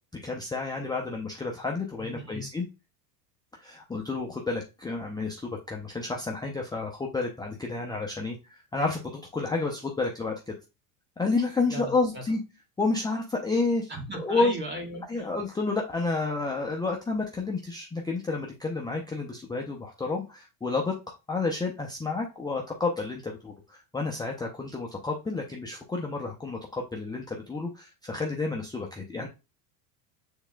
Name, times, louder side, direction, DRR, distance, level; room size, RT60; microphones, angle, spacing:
voice 1, 0.1-2.7 3.6-8.4 8.7-10.5 11.2-12.4 12.8-13.9 14.2-14.5 15.0-20.9 21.3-29.3, left 3 dB, 10° left, -1 dB, 0.6 m, -30 dB
voice 2, 2.0-2.5 11.7-12.2 13.9-15.3, right 1 dB, 20° right, 1 dB, 1.6 m, -37 dB
6.4 x 3.6 x 2.2 m, 0.27 s
supercardioid pair, 110°, 50 cm